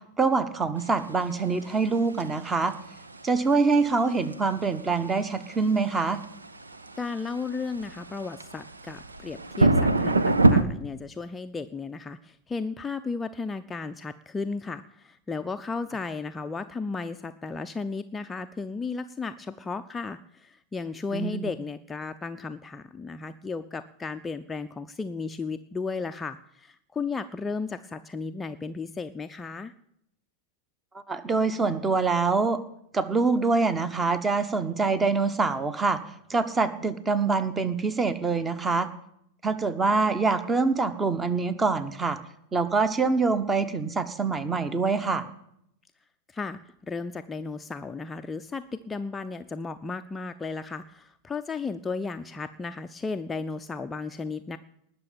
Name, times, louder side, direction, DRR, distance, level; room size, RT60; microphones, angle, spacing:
voice 1, 0.2-2.7 3.2-6.2 21.1-21.5 31.1-32.6 32.9-36.0 36.3-38.9 39.4-42.2 42.5-45.2, right 4 dB, 15° right, 14 dB, 1.2 m, -25 dB
sound 1, 0.8-10.6, right 2 dB, 80° right, 0.9 m, -27 dB
voice 2, 7.0-29.7 46.3-54.6, left 4 dB, 15° left, 8 dB, 0.6 m, -34 dB
19.5 x 6.8 x 8.9 m, 0.73 s
figure-of-eight pair, 90°, 0 cm